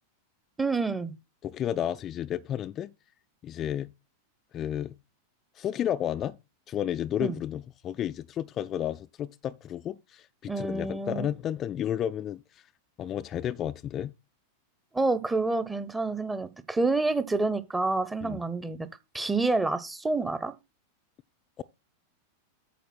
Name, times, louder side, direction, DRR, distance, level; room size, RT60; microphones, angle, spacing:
voice 1, 0.6-1.1 7.2-7.4 10.5-11.2 14.9-18.9 19.1-20.5, right 3 dB, 10° right, 0.9 m, -28 dB
voice 2, 1.4-2.9 3.4-3.9 4.5-5.0 5.6-6.4 6.7-12.7 13.0-14.1 18.2-18.4 21.6-21.7, left 10 dB, 30° left, 0.4 m, -32 dB
9.3 x 6.7 x 4.4 m
figure-of-eight pair, 90°, 0 cm